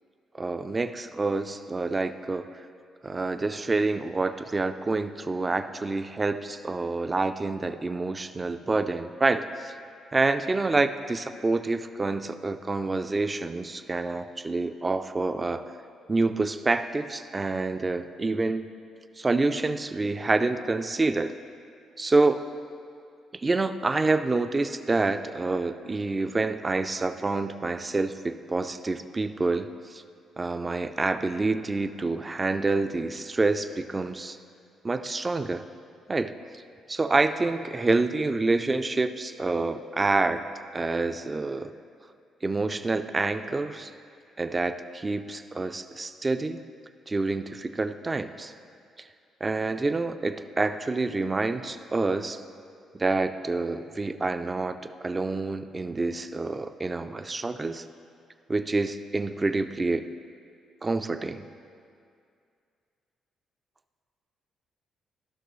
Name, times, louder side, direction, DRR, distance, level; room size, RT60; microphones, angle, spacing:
voice 1, 0.3-2.5 3.0-9.7 10.1-15.7 16.1-18.6 19.2-21.4 22.0-22.4 23.3-30.0 30.4-34.4 34.8-35.6 36.1-36.3 36.9-40.4 40.7-41.7 42.4-43.9 44.4-46.6 47.1-48.5 49.0-49.1 49.4-52.4 53.0-57.8 58.5-60.1 60.8-61.5, right 3 dB, 25° right, 10 dB, 0.4 m, -27 dB
13.5 x 5.9 x 3.1 m, 2.4 s
cardioid pair, 90°, 0 cm